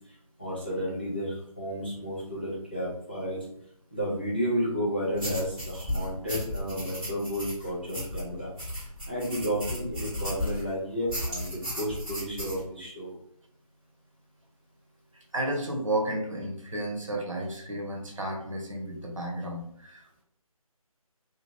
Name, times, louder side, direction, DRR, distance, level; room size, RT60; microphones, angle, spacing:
voice 1, 0.4-3.5 3.9-8.5 9.1-13.2, equal, 15° left, -7 dB, 0.4 m, -32 dB
sound 1, 5.1-10.7 11.1-12.6, left 1 dB, 5° right, 0.8 m, -35 dB
voice 2, 15.3-20.2, right 1 dB, 60° right, 1 dB, 0.8 m, -32 dB
2.7 x 2.2 x 3.4 m, 0.70 s
figure-of-eight pair, 160°, 19 cm